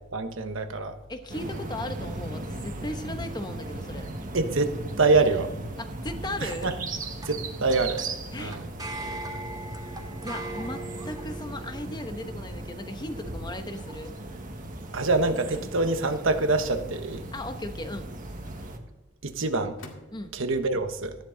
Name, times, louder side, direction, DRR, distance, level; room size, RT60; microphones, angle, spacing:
voice 1, 0.1-1.0 4.3-5.5 6.4-6.7 7.2-8.0 8.4-8.7 14.9-17.2 19.2-19.8 20.3-21.2, right 3 dB, 75° right, 8 dB, 1.2 m, -25 dB
voice 2, 1.1-4.1 5.8-6.7 8.3-8.6 10.2-14.1 17.3-18.1 20.1-20.3, left 1 dB, 20° left, 7 dB, 1.1 m, -37 dB
sound 1, 1.3-18.8, right 2 dB, 45° right, 1.6 m, -37 dB
sound 2, 5.6-15.7, right 2 dB, 20° right, 2.7 m, -42 dB
sound 3, 13.7-14.2 15.5-15.9 16.9-17.6 18.5-19.2 19.8-20.5, left 2 dB, 85° left, 2.0 m, -51 dB
14.5 x 10.5 x 4.0 m, 1.1 s
head